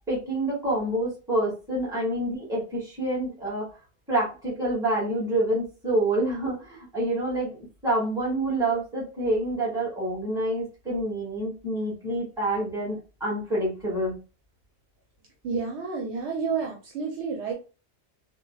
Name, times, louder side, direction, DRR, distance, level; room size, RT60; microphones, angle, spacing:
voice 1, 0.1-3.6 4.1-7.6 7.8-14.2, right 1 dB, 5° right, -6 dB, 1.5 m, -27 dB
voice 2, 15.4-17.5, right 5 dB, 80° right, 0 dB, 1.0 m, -30 dB
3.7 x 2.2 x 2.2 m, 0.32 s
omnidirectional pair, 1.2 m